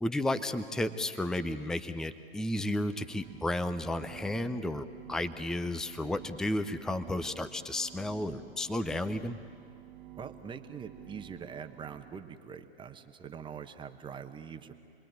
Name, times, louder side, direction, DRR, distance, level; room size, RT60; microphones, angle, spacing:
voice 1, 0.0-9.4, left 1 dB, ahead, 11 dB, 0.6 m, -33 dB
sound 1, 2.7-12.3, right 12 dB, 50° right, 2.0 m, -52 dB
voice 2, 10.2-14.7, right 7 dB, 15° right, 7 dB, 1.1 m, -43 dB
28.5 x 21.5 x 9.3 m, 2.3 s
figure-of-eight pair, 115°, 33 cm